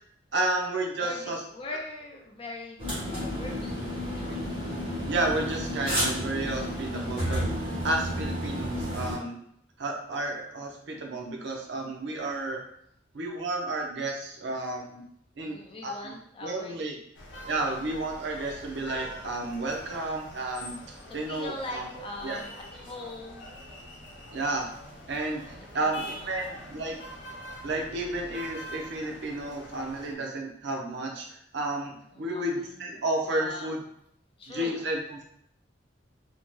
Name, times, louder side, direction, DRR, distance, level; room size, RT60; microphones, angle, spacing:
voice 1, 0.3-1.4 5.1-9.4 9.8-12.6 13.1-15.0 15.4-15.6 15.8-16.1 16.4-16.9 17.4-20.8 21.1-21.9 22.2-22.4 24.3-24.7 25.1-27.0 27.6-33.8 34.5-35.2, right 2 dB, 70° right, 1 dB, 0.6 m, -32 dB
voice 2, 1.0-2.8 3.1-4.6 15.4-16.9 17.5-17.8 21.1-23.5 25.6-26.6 32.1-32.7 33.3-33.7 34.4-34.8, left 2 dB, 30° left, 0 dB, 0.4 m, -41 dB
sound 1, 2.8-9.1, equal, 30° right, 1.4 m, -31 dB
sound 2, 17.1-30.1, equal, 85° left, 0.6 m, -44 dB
2.7 x 2.1 x 3.0 m, 0.71 s
head